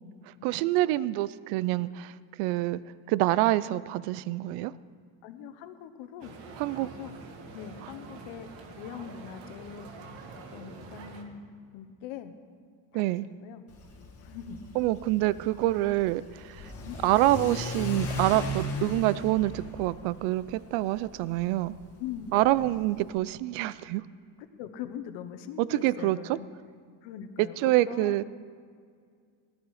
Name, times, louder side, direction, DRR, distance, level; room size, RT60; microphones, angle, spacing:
voice 1, 0.3-2.8 3.1-4.7 6.6-6.9 7.8-7.9 12.9-13.2 14.7-16.7 17.0-21.7 22.3-24.0 25.6-26.4 27.4-28.2, right 16 dB, 85° right, 18 dB, 0.6 m, -26 dB
voice 2, 5.2-6.4 6.7-7.2 7.5-9.9 10.5-11.4 11.7-12.3 12.9-13.0 13.4-13.6 14.2-14.6 16.8-17.0 22.0-22.8 24.6-26.5 27.0-28.2, left 9 dB, 70° left, 9 dB, 1.2 m, -42 dB
sound 1, 6.2-11.2, right 4 dB, 65° right, 1.9 m, -46 dB
Car / Accelerating revving vroom, 13.7-23.1, left 1 dB, 30° left, 1.8 m, -38 dB
18.5 x 12.5 x 4.9 m, 2.1 s
cardioid pair, 165°, 48 cm